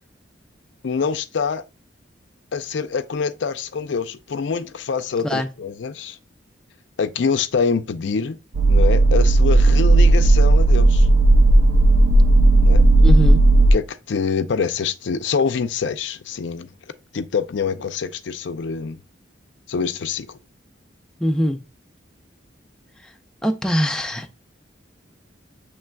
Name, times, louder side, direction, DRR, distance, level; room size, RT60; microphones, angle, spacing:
voice 1, 0.8-1.6 2.5-6.2 7.0-8.4 8.7-11.1 12.6-12.8 13.7-16.7 17.1-19.0 19.7-20.4, left 5 dB, 70° left, 0.4 m, -25 dB
sound 1, 8.5-13.7, right 2 dB, 75° right, 0.4 m, -13 dB
voice 2, 13.0-13.4 21.2-21.6 23.0-23.1 23.4-24.3, equal, 5° left, 0.4 m, -22 dB
7.4 x 3.2 x 2.2 m
head